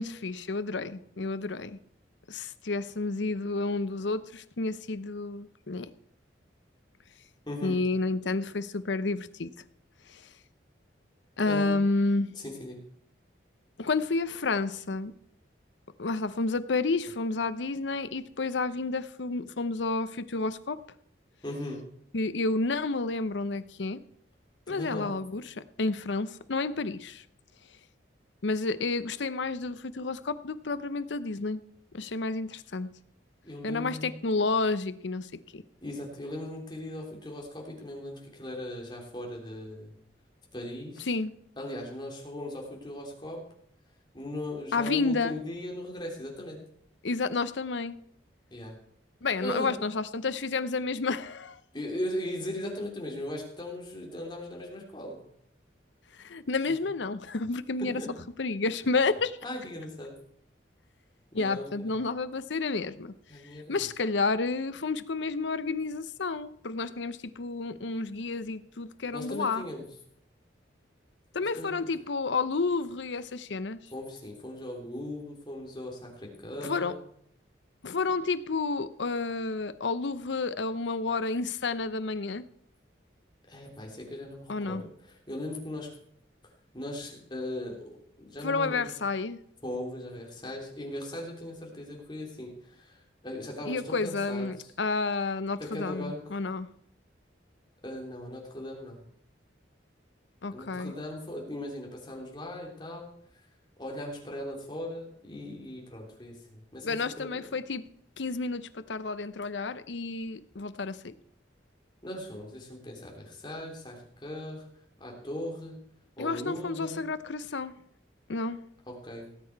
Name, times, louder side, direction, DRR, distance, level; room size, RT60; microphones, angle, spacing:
voice 1, 0.0-1.8 2.3-5.9 7.6-9.5 10.1-10.2 11.4-12.3 13.8-15.1 16.0-20.8 22.1-24.0 24.7-27.2 28.4-31.6 31.9-32.9 33.6-35.3 35.5-35.6 41.1-41.3 44.7-45.3 47.0-48.0 49.2-51.6 56.2-58.0 58.4-59.4 61.3-63.1 63.7-69.6 71.3-73.8 76.6-76.9 77.8-82.4 84.5-84.8 88.4-89.4 93.7-96.7 100.4-100.9 106.8-107.8 108.2-111.1 116.2-117.7 118.3-118.6, left 3 dB, 75° left, 13 dB, 0.7 m, -30 dB
voice 2, 7.5-7.8 11.4-11.8 12.3-12.8 21.4-21.8 24.7-25.1 33.4-34.1 35.8-39.9 40.5-41.1 41.6-43.4 44.1-46.6 48.5-48.8 49.4-49.7 51.7-55.2 56.7-56.8 57.8-58.1 59.4-60.1 61.3-62.0 63.3-63.9 69.1-69.9 71.5-71.7 73.9-76.9 83.5-85.9 86.7-88.9 89.6-94.7 95.6-96.4 97.8-99.0 100.5-103.1 103.8-107.5 112.0-114.7 115.0-115.8 116.2-117.0 118.9-119.3, left 1 dB, 25° left, -1 dB, 3.2 m, -38 dB
18.0 x 8.6 x 4.7 m, 0.69 s
head